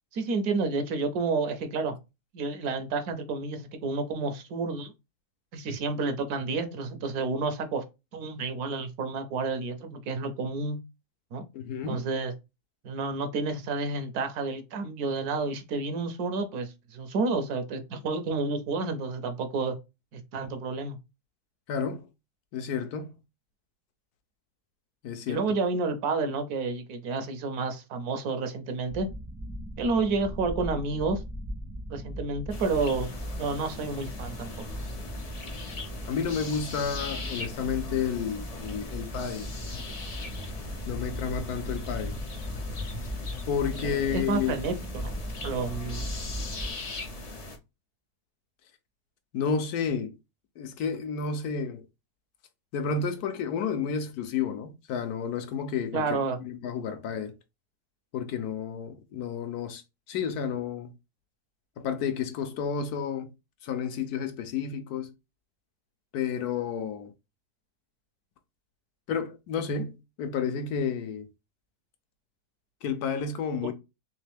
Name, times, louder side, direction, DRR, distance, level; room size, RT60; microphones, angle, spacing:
voice 1, 0.1-1.9 2.3-4.9 5.5-7.8 8.1-10.8 11.3-11.4 11.9-12.3 12.8-19.7 20.1-21.0 25.3-29.1 29.8-31.2 31.9-33.1 33.4-34.6 43.8-46.1 55.9-56.4 73.6-73.7, right 3 dB, 75° right, 1.2 m, -30 dB
voice 2, 11.5-12.1 21.7-22.0 22.5-23.1 25.0-25.4 36.1-39.5 40.9-42.2 43.5-44.6 49.3-50.2 50.6-51.8 52.7-57.3 58.1-59.8 60.1-60.9 61.8-63.3 63.6-65.1 66.1-67.1 69.1-71.3 72.8-73.7, left 6 dB, 75° left, 1.2 m, -31 dB
sound 1, 28.9-46.7, equal, 25° right, 0.4 m, -39 dB
sound 2, 32.5-47.6, left 3 dB, 45° left, 0.4 m, -39 dB
3.6 x 3.2 x 3.4 m
omnidirectional pair, 1.7 m